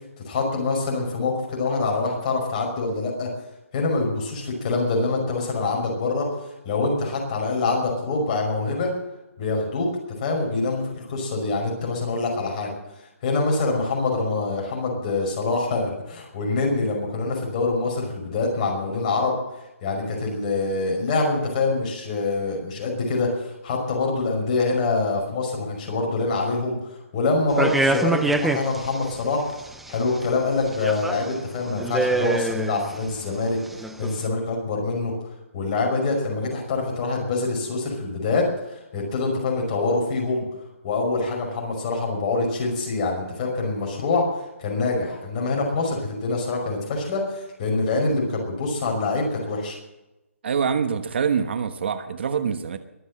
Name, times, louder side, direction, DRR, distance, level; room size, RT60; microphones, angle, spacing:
voice 1, 0.3-3.3 3.7-6.3 6.7-8.9 9.4-9.9 10.2-12.7 13.2-19.4 19.8-26.8 27.1-29.4 29.9-33.6 34.0-35.1 35.5-38.5 38.9-40.4 40.8-44.3 44.6-49.8, left 3 dB, 25° left, 0 dB, 5.6 m, -25 dB
sound 1, 27.5-29.0 29.5-30.2 30.7-31.3 31.7-33.1 33.7-34.2, right 2 dB, ahead, 0.5 m, -25 dB
voice 2, 50.4-52.8, right 6 dB, 50° right, 10 dB, 1.2 m, -25 dB
22.5 x 8.0 x 7.7 m, 0.97 s
hypercardioid pair, 165°, 8 cm